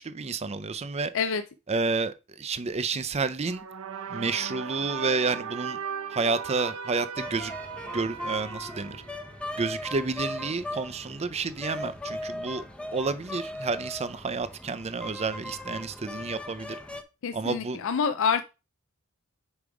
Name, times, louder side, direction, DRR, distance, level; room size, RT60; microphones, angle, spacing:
voice 1, 0.0-1.1 1.7-3.6 4.1-5.8 6.1-7.5 7.9-9.0 9.5-12.6 12.9-16.8 17.3-17.8, right 4 dB, 30° right, 0.5 m, -30 dB
sound 1, 3.5-9.8, right 6 dB, 80° right, 0.9 m, -38 dB
sound 2, 7.2-17.0, left 1 dB, 5° left, 0.7 m, -38 dB
voice 2, 17.2-18.4, left 6 dB, 65° left, 0.5 m, -26 dB
5.3 x 4.9 x 4.8 m
head